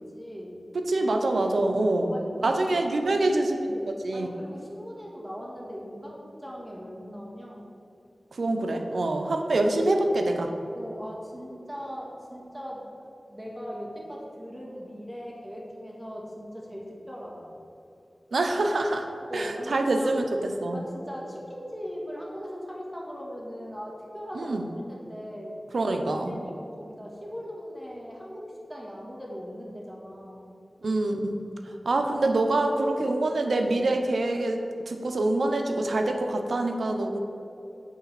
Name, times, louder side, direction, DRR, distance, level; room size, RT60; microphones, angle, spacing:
voice 1, 0.0-0.6 1.0-1.1 1.9-2.6 3.0-3.3 3.7-7.7 9.4-9.5 10.7-13.0 13.3-17.5 19.3-20.1 20.7-24.6 24.9-25.6 26.1-30.5 32.0-32.2 33.0-33.2, equal, 10° right, -3 dB, 1.8 m, -40 dB
voice 2, 0.7-2.1 2.4-3.6 4.0-4.3 8.4-10.5 18.3-19.0 19.3-20.8 24.3-24.7 25.7-26.4 30.8-31.4 31.8-37.2, right 2 dB, 85° right, 4 dB, 0.6 m, -25 dB
8.3 x 4.0 x 5.9 m, 2.8 s
wide cardioid pair, 55°, 0 cm